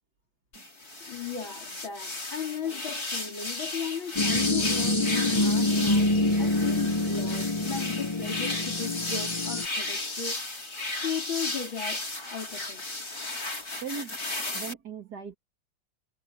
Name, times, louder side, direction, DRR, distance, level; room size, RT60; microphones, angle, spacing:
sound 1, 0.5-14.7, left 2 dB, 45° left, 5.6 m, -35 dB
voice 1, 1.0-10.4 10.9-12.9, left 7 dB, 80° left, 4.2 m, -37 dB
sound 2, 4.2-9.7, left 2 dB, 15° left, 1.0 m, -26 dB
voice 2, 13.8-14.2 14.5-15.4, right 6 dB, 55° right, 2.7 m, -38 dB
omnidirectional pair, 2.1 m